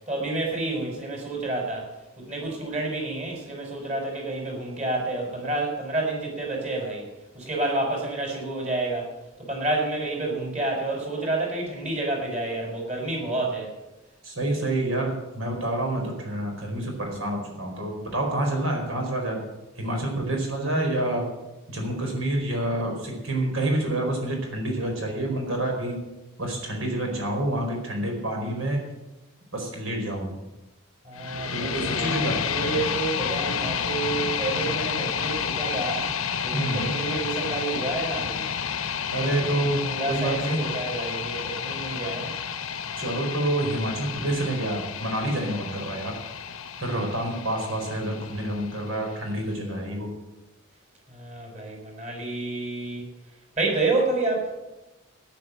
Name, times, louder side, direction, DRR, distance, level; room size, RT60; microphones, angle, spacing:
voice 1, 0.0-1.9 2.3-7.1 7.3-9.1 9.4-13.7 20.0-20.3 31.0-36.1 36.4-38.5 39.3-42.3 51.1-53.1 53.6-54.5, right 2 dB, 35° right, 0 dB, 5.4 m, -29 dB
voice 2, 14.2-19.4 19.8-21.3 21.7-26.0 26.4-28.8 29.5-30.3 31.5-32.4 36.5-37.0 39.1-40.6 42.9-46.1 46.8-50.1, right 1 dB, 75° right, 2 dB, 4.7 m, -28 dB
sound 1, 31.1-49.2, left 7 dB, 85° left, 1.0 m, -30 dB
13.5 x 10.0 x 7.8 m, 1.0 s
head